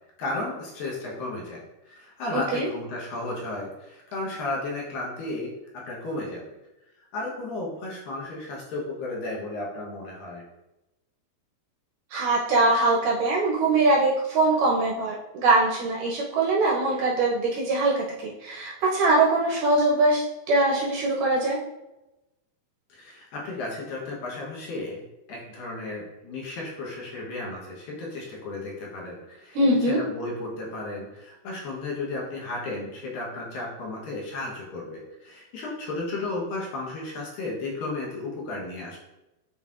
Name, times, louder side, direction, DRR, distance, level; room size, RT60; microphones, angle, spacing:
voice 1, 0.2-1.6 1.9-6.5 7.1-10.4 22.9-39.0, left 2 dB, 70° left, -3 dB, 2.6 m, -34 dB
voice 2, 2.3-2.7 12.1-21.6 29.5-30.0, right 2 dB, 75° right, -3 dB, 2.1 m, -22 dB
9.3 x 4.1 x 2.5 m, 0.96 s
omnidirectional pair, 4.5 m